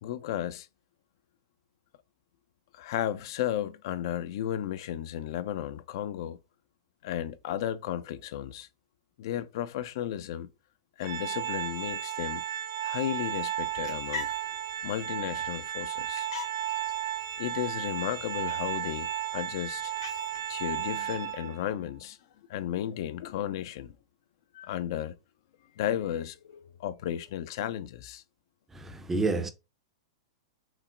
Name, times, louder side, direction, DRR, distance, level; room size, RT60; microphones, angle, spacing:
voice 1, 0.0-0.7 2.7-6.4 7.0-8.7 9.2-10.5 11.0-12.4 12.8-14.3 14.8-16.3 17.4-19.9 20.5-22.2 22.5-23.9 24.5-25.1 25.8-28.2, left 11 dB, 55° left, 0.3 m, -34 dB
Organ, 11.0-21.7, right 11 dB, 70° right, 1.8 m, -34 dB
sound 1, 13.5-21.4, left 6 dB, 75° left, 1.1 m, -46 dB
voice 2, 28.7-29.5, right 3 dB, 10° right, 0.5 m, -29 dB
5.9 x 2.1 x 2.4 m
hypercardioid pair, 110°, 3 cm